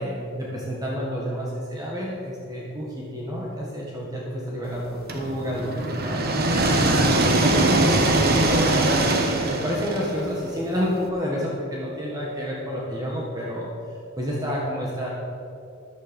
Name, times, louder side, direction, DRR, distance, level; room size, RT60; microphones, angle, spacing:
voice 1, 0.0-13.7 14.2-15.1, equal, 20° right, -4 dB, 1.7 m, -29 dB
sound 1, 5.1-11.0, right 2 dB, 50° right, 1.3 m, -22 dB
13.5 x 11.5 x 5.3 m, 2.6 s
head